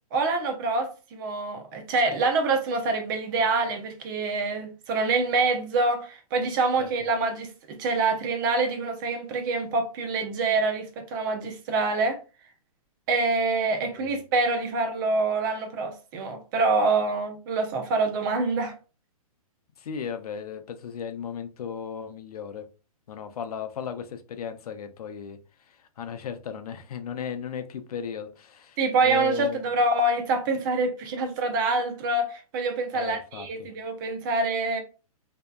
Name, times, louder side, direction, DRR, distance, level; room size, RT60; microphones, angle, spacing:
voice 1, 0.1-12.2 13.1-18.7 28.8-34.8, right 3 dB, 35° right, 0.5 m, -26 dB
voice 2, 19.8-22.7 23.1-29.6 32.9-33.7, left 7 dB, 75° left, 0.5 m, -36 dB
2.7 x 2.2 x 2.2 m
hypercardioid pair, 140°, 19 cm